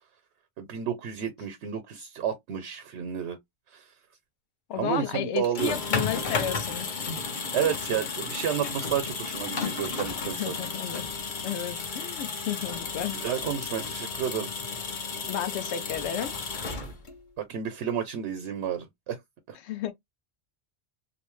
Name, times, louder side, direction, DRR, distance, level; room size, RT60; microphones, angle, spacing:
voice 1, 0.6-3.4 3.7-3.9 4.8-5.8 7.5-10.6 13.1-14.5 16.8-16.9 17.4-19.2 19.5-19.6, right 8 dB, 90° right, 0.9 m, -31 dB
voice 2, 4.7-6.9 10.3-11.0 11.4-13.6 15.2-16.3 19.6-19.9, left 10 dB, 80° left, 0.9 m, -33 dB
sound 1, 5.4-17.3, left 4 dB, 50° left, 0.8 m, -33 dB
2.7 x 2.0 x 3.0 m
omnidirectional pair, 1.1 m